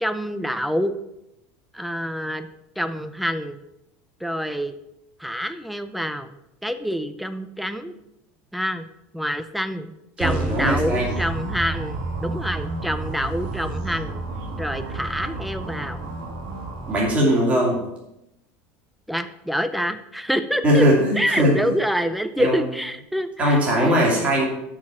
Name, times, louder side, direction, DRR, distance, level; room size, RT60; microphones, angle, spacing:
voice 1, 0.0-0.9 1.7-2.5 2.8-3.6 4.2-4.7 5.2-6.4 6.6-7.9 8.5-8.9 9.1-9.9 10.2-14.2 14.6-16.0 19.1-20.9 21.2-24.0, equal, ahead, 11 dB, 0.4 m, -26 dB
voice 2, 10.2-11.1 16.9-17.8 20.6-21.5 22.4-22.6 23.4-24.4, equal, 20° right, -3 dB, 2.4 m, -19 dB
sound 1, 10.2-17.1, right 2 dB, 70° right, 2.3 m, -30 dB
6.4 x 6.0 x 7.4 m, 0.86 s
cardioid pair, 170°, 6 cm